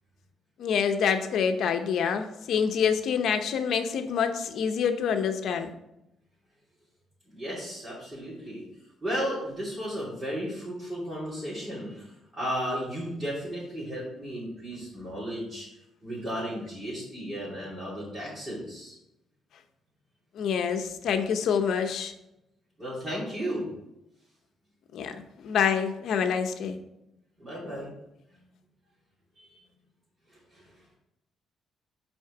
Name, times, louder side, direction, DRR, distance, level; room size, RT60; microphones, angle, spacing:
voice 1, 0.6-5.7 20.4-22.1 24.9-25.2 25.4-26.8, left 7 dB, 70° left, 7 dB, 0.8 m, -26 dB
voice 2, 7.3-8.6 9.0-12.1 12.3-15.7 16.0-18.9 22.8-23.7 27.4-27.9 29.4-29.6 30.5-30.6, equal, 15° right, -10 dB, 3.0 m, -34 dB
6.2 x 4.4 x 5.9 m, 0.86 s
cardioid pair, 105°, 0 cm